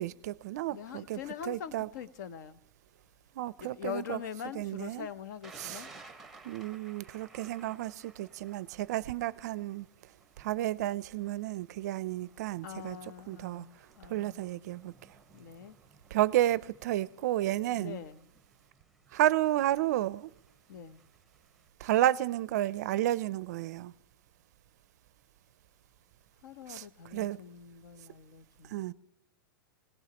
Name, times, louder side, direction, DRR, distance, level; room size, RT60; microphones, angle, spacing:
voice 1, 0.0-1.9 3.3-4.2 4.5-5.1 5.6-5.9 6.4-9.9 10.4-13.0 13.3-13.7 14.1-14.9 16.1-18.0 19.1-20.3 21.8-23.9 26.7-27.4 28.7-28.9, right 14 dB, 50° right, 0.5 m, -31 dB
voice 2, 0.7-2.6 3.6-5.9 12.6-14.4 15.3-15.8 17.7-18.2 20.7-21.0 26.4-28.9, left 8 dB, 55° left, 0.9 m, -43 dB
Thunder, 5.4-21.7, right 3 dB, ahead, 1.0 m, -58 dB
21.5 x 18.0 x 2.9 m
supercardioid pair, 165°, 11 cm